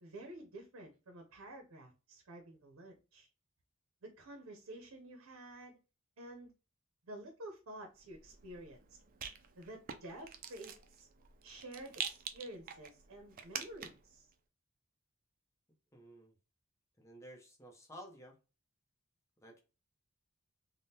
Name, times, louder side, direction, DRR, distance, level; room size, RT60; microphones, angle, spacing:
voice 1, 0.0-3.3 4.0-5.8 6.2-6.5 7.1-9.0 9.6-11.1 11.4-14.3, right 1 dB, 80° right, 0.6 m, -50 dB
Rattle, 8.0-14.1, right 7 dB, 40° right, 0.4 m, -46 dB
voice 2, 15.9-16.4 17.0-18.4 19.4-19.6, equal, 15° left, 0.8 m, -53 dB
3.5 x 2.1 x 2.7 m
head